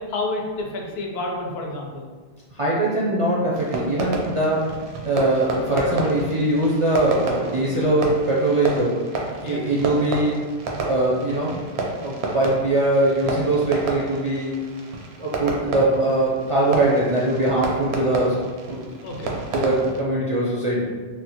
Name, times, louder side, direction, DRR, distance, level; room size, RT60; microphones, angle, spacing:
voice 1, 0.0-2.1 9.4-9.6 19.0-19.3, left 2 dB, 75° left, 0 dB, 0.8 m, -29 dB
voice 2, 2.5-4.7 5.0-9.0 9.4-10.5 10.9-11.6 12.0-14.5 15.2-18.4 18.7-18.9 19.5-20.8, right 2 dB, 50° right, -6 dB, 0.4 m, -21 dB
Fireworks, 3.5-20.0, right 3 dB, 85° right, 0.8 m, -31 dB
3.6 x 2.1 x 2.8 m, 1.5 s
omnidirectional pair, 1.1 m